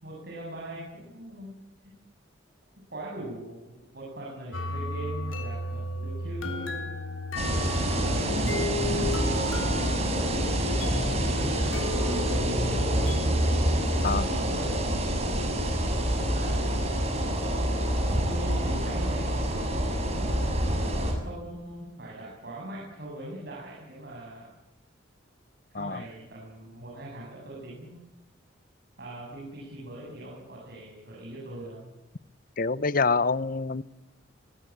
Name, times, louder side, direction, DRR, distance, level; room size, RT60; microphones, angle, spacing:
voice 1, 0.0-1.6 1.8-1.9 2.9-6.9 8.0-13.1 13.9-14.9 16.3-16.9 18.2-20.5 21.2-24.5 25.7-28.0 29.0-31.9, right 1 dB, 55° right, 7.7 m, -41 dB
sound 1, 4.5-13.2, left 1 dB, 85° left, 3.6 m, -34 dB
sound 2, 7.4-21.1, right 1 dB, 35° right, 6.7 m, -27 dB
voice 2, 32.6-33.8, left 4 dB, 45° left, 0.8 m, -26 dB
24.0 x 21.0 x 8.7 m
head